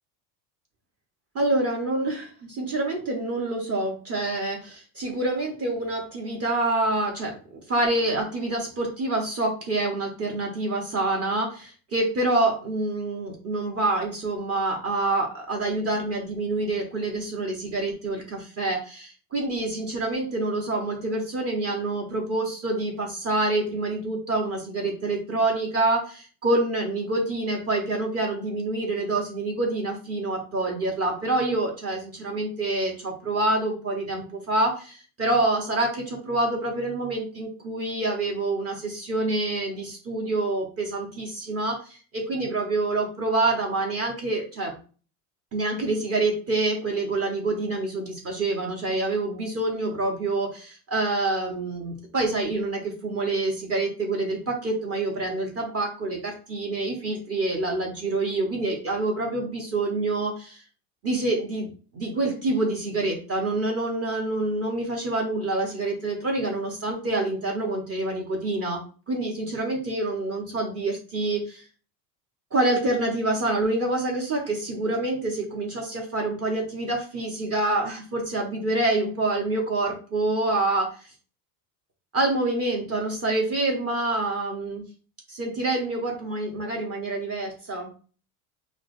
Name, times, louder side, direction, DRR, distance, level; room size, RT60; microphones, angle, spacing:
voice 1, 1.3-7.4 7.7-44.8 45.5-60.6 61.0-71.6 72.5-81.1 82.1-84.8 85.3-87.9, right 2 dB, 35° right, 0 dB, 0.9 m, -27 dB
4.7 x 2.1 x 2.5 m, 0.38 s
supercardioid pair, 110°, 44 cm